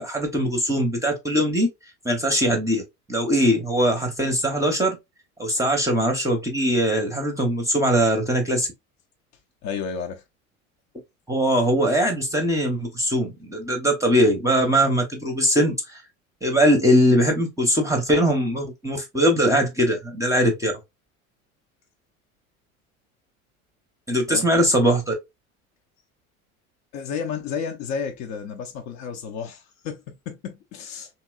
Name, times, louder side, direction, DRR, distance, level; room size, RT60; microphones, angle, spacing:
voice 1, 0.0-1.7 2.0-2.8 3.1-5.0 5.4-8.7 11.3-16.0 16.4-20.7 24.1-25.1, equal, 5° right, 0.7 m, -21 dB
voice 2, 9.6-10.2 24.3-24.5 26.9-31.1, left 6 dB, 40° left, 0.6 m, -32 dB
2.9 x 2.8 x 2.2 m
hypercardioid pair, 85°, 42 cm